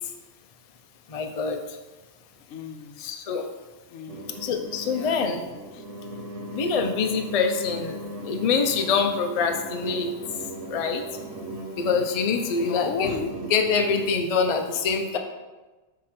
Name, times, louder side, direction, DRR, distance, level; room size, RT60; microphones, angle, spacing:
voice 1, 1.1-1.6 3.0-3.4 4.4-5.4 6.5-8.0 8.3-10.1 10.7-11.0 11.8-13.1 13.5-15.2, left 5 dB, 45° left, 5 dB, 0.5 m, -25 dB
voice 2, 2.5-3.0 3.9-4.3 4.8-5.2 5.7-5.9 12.5-13.3 14.7-14.8, left 6 dB, 80° left, 7 dB, 1.0 m, -35 dB
sound 1, 4.1-14.1, right 1 dB, 65° right, 1.2 m, -38 dB
6.5 x 3.7 x 5.8 m, 1.2 s
omnidirectional pair, 1.4 m